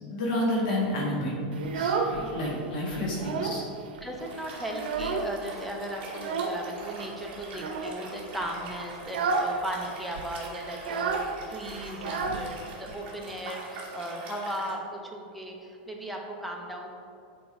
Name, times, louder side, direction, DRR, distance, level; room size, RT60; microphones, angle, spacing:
voice 1, 0.1-1.3 1.7-3.6, left 1 dB, 60° left, -4 dB, 1.5 m, -29 dB
Child speech kid speaking, 1.5-2.6 2.9-3.7 4.0-4.1 4.4-5.5 6.2-6.6 7.5-8.0 8.4-8.6 9.0-9.6 9.8-9.9 10.1-12.9, right 4 dB, 90° right, 0.6 m, -30 dB
voice 2, 4.0-16.9, right 1 dB, ahead, 0 dB, 0.6 m, -37 dB
Liquid, 4.2-14.7, right 3 dB, 30° right, 1.4 m, -44 dB
8.4 x 4.1 x 3.5 m, 2.6 s
supercardioid pair, 170°, 5 cm